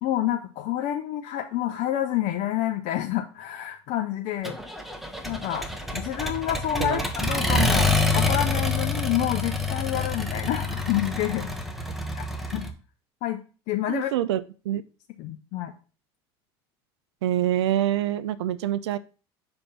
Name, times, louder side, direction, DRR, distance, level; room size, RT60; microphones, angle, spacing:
voice 1, 0.0-4.5 5.2-11.5 12.1-12.2 12.5-12.7 13.2-13.4 13.7-14.1 15.2-15.7, left 12 dB, 60° left, 5 dB, 0.8 m, -28 dB
Accelerating revving vroom, 4.4-12.7, left 2 dB, ahead, 1.4 m, -27 dB
voice 2, 13.9-14.8 17.2-19.0, right 12 dB, 80° right, 16 dB, 0.4 m, -26 dB
6.8 x 3.5 x 5.8 m, 0.36 s
hypercardioid pair, 80°, 14 cm